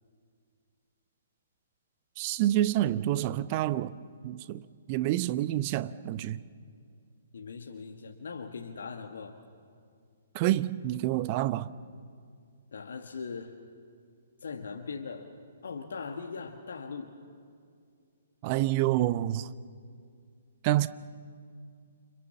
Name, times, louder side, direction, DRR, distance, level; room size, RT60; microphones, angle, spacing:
voice 1, 2.2-6.4 10.3-11.7 18.4-19.5 20.6-20.9, right 14 dB, 30° right, 0.7 m, -28 dB
voice 2, 7.3-9.4 12.7-13.6 14.4-15.3 15.6-17.1, left 5 dB, 60° left, 1.5 m, -40 dB
29.5 x 25.5 x 7.2 m
figure-of-eight pair, 125°, 0 cm